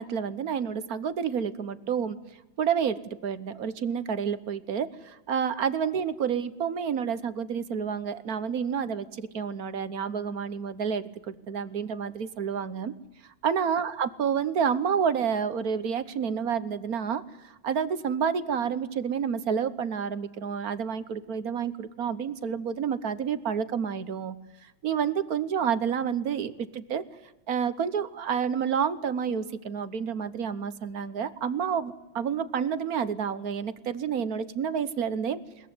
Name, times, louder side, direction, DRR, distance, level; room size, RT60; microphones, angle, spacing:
voice 1, 0.0-2.2 2.6-12.9 13.4-24.4 24.6-27.0 27.5-35.4, right 7 dB, 50° right, 14 dB, 1.3 m, -29 dB
21.5 x 20.5 x 9.5 m, 0.95 s
omnidirectional pair, 2.3 m